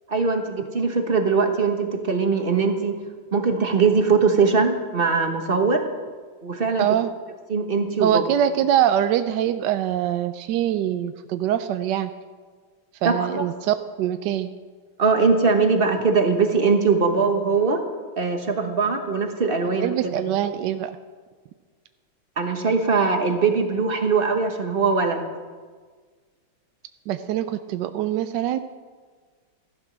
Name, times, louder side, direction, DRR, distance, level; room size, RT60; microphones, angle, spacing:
voice 1, 0.1-3.0 3.3-5.8 6.4-6.9 7.5-8.2 13.0-13.5 15.0-17.8 18.2-20.2 22.4-25.3, right 4 dB, 35° right, 5 dB, 1.2 m, -21 dB
voice 2, 6.8-7.1 8.0-12.1 13.0-14.5 19.6-20.9 27.1-28.6, right 10 dB, 75° right, 9 dB, 1.1 m, -23 dB
15.0 x 11.5 x 6.1 m, 1.5 s
omnidirectional pair, 2.2 m